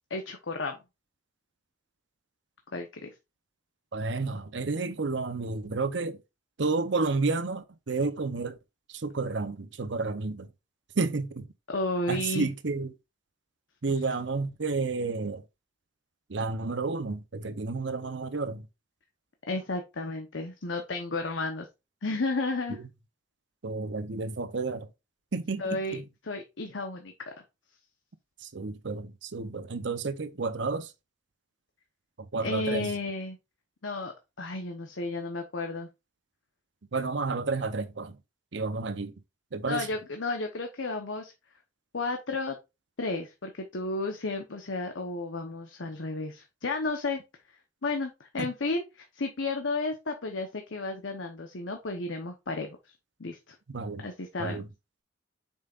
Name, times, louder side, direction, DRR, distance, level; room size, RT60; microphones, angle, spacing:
voice 1, 0.1-0.8 2.7-3.1 11.7-12.5 19.5-21.7 22.0-22.8 25.6-27.3 32.4-33.4 33.8-35.9 39.7-41.3 41.9-42.6 43.0-47.2 47.8-52.8 53.2-53.6 54.0-54.6, left 3 dB, 85° left, 1.0 m, -33 dB
voice 2, 3.9-6.2 6.6-8.6 8.9-10.5 11.0-11.5 12.1-12.9 13.8-15.4 16.3-18.7 22.7-22.8 23.6-24.9 25.3-26.0 28.4-30.9 32.3-32.9 36.9-38.2 38.5-39.1 39.5-39.9 48.4-48.5 53.7-54.1 54.4-54.7, right 3 dB, 70° right, 0.7 m, -31 dB
7.3 x 5.6 x 2.5 m
head